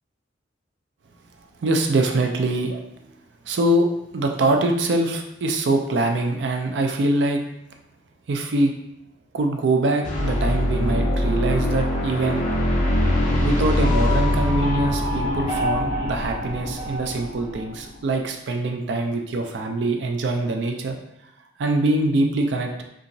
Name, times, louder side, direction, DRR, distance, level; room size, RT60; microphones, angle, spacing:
voice 1, 1.6-2.8 3.4-3.9 4.1-7.4 8.3-8.7 9.3-12.5 13.4-21.0 21.6-22.8, right 2 dB, 70° right, 4 dB, 0.4 m, -23 dB
sound 1, 10.0-16.7, left 1 dB, 40° left, 0.5 m, -23 dB
sound 2, 12.9-18.0, left 2 dB, 25° right, 1.5 m, -28 dB
2.8 x 2.4 x 2.6 m, 0.82 s
head